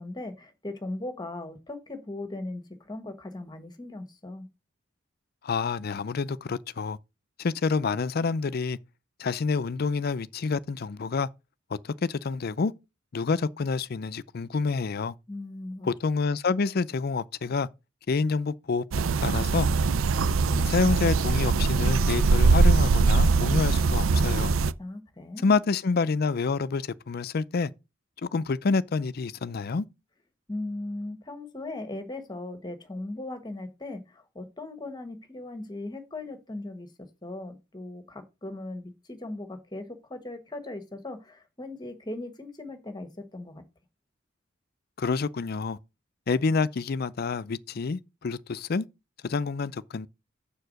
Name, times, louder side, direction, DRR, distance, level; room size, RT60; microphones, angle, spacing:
voice 1, 0.0-4.5 15.3-15.9 24.8-25.6 30.5-36.9 37.2-43.6, left 2 dB, 20° left, 1.4 m, -38 dB
voice 2, 5.4-7.0 7.4-8.8 9.2-11.3 11.7-12.7 13.1-15.1 16.0-17.7 18.1-19.7 20.5-24.5 25.4-27.7 28.2-29.9 45.0-45.8 46.3-48.9 49.2-50.1, left 4 dB, 50° left, 0.5 m, -28 dB
sound 1, 18.9-24.7, right 4 dB, 85° right, 0.5 m, -22 dB
7.0 x 4.7 x 6.4 m
head